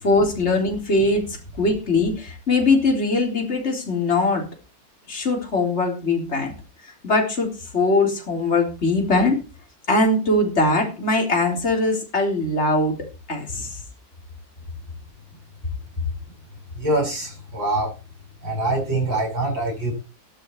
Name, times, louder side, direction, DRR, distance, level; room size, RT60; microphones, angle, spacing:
voice 1, 0.0-4.5 5.1-6.5 6.8-9.4 9.9-13.0 13.3-13.8, left 2 dB, 35° left, 2 dB, 4.1 m, -21 dB
voice 2, 16.8-17.9 18.4-19.9, right 2 dB, 85° right, 0 dB, 8.1 m, -24 dB
13.5 x 11.5 x 4.7 m, 0.32 s
omnidirectional pair, 2.0 m